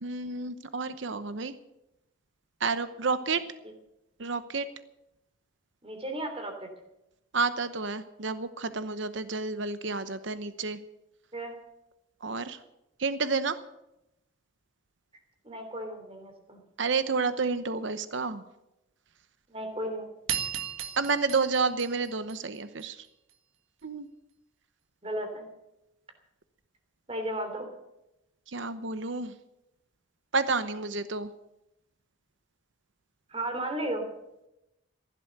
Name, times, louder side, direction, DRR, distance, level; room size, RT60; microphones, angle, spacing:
voice 1, 0.0-1.6 2.6-3.4 4.2-4.7 7.3-10.8 12.2-12.6 13.0-13.6 16.8-18.4 21.0-23.1 23.8-24.1 28.5-29.3 30.3-31.3, right 4 dB, 65° right, 12 dB, 0.9 m, -30 dB
voice 2, 5.8-6.7 11.3-11.6 15.4-16.6 19.5-20.1 25.0-25.4 27.1-27.7 33.3-34.1, right 1 dB, 30° right, 5 dB, 3.1 m, -34 dB
sound 1, 20.3-22.8, right 9 dB, 85° right, 1.8 m, -36 dB
16.0 x 11.5 x 6.8 m, 0.88 s
head